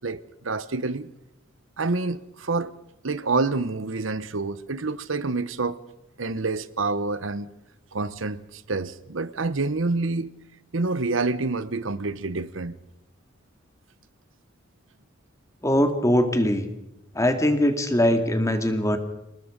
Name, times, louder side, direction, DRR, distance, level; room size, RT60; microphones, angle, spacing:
voice 1, 0.0-1.1 1.8-2.7 3.0-5.8 6.2-7.5 7.9-10.3 10.7-12.8, right 3 dB, 75° right, 1.0 m, -27 dB
voice 2, 15.6-16.7 17.1-19.0, left 1 dB, 15° left, 2.3 m, -21 dB
28.0 x 19.5 x 5.2 m
head